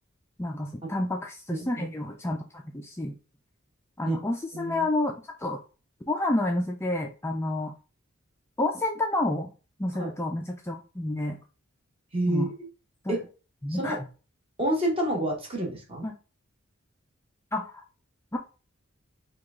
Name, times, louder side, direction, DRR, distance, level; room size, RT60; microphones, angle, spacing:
voice 1, 0.4-3.1 4.0-5.1 5.4-5.6 6.1-7.7 8.6-9.5 9.8-11.4 12.3-12.5 13.0-13.2 13.6-14.0 16.0-16.1 17.5-17.8 18.3-18.4, left 1 dB, 10° left, 2 dB, 0.3 m, -29 dB
voice 2, 1.5-1.9 4.0-4.2 4.5-4.8 10.0-10.1 12.1-12.7 13.1-13.2 13.7-14.0 14.6-16.1, right 1 dB, 25° right, -1 dB, 1.3 m, -29 dB
4.8 x 2.3 x 3.6 m, 0.34 s
head